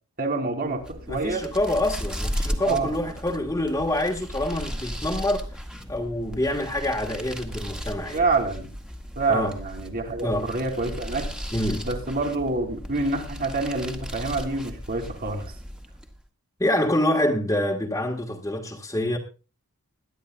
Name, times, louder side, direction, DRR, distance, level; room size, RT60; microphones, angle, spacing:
voice 1, 0.2-1.5 2.6-2.9 8.1-8.7 9.2-11.3 11.8-15.5, right 3 dB, 40° right, 2.9 m, -27 dB
sound 1, 0.7-16.2, equal, 5° right, 1.6 m, -35 dB
voice 2, 1.1-8.2 9.3-9.6 10.2-10.5 11.5-11.9 16.6-19.2, left 1 dB, 15° left, 1.5 m, -26 dB
21.5 x 12.0 x 2.3 m
head